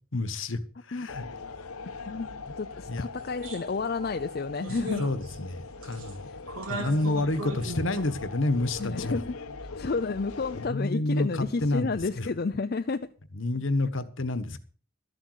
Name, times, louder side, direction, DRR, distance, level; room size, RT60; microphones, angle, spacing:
voice 1, 0.1-0.6 0.9-1.2 2.5-2.6 2.9-3.1 5.0-6.3 6.7-9.2 10.7-11.9 12.2-12.3 13.3-14.6, left 2 dB, 60° left, 1.3 m, -29 dB
sound 1, 1.1-10.7, left 4 dB, 90° left, 1.1 m, -41 dB
voice 2, 1.8-5.0 8.8-9.4 9.8-13.1, left 4 dB, 45° left, 0.5 m, -31 dB
sound 2, 3.4-3.6 4.0-4.1 4.6-5.5 5.8-6.1 6.5-8.0, right 2 dB, 80° right, 3.3 m, -38 dB
13.0 x 8.2 x 6.4 m
head